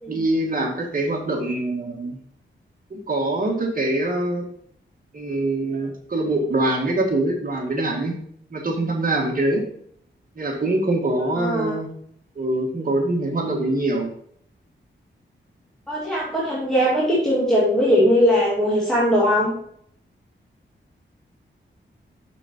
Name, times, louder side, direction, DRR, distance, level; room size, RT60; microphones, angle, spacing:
voice 1, 0.1-2.2 2.9-4.5 5.1-8.2 8.5-9.6 10.4-11.9 12.4-14.1, right 2 dB, 45° right, 0 dB, 2.1 m, -24 dB
voice 2, 11.4-11.7 15.9-19.5, equal, 5° left, -8 dB, 2.4 m, -20 dB
7.0 x 6.8 x 4.5 m, 0.66 s
wide cardioid pair, 125°, 20 cm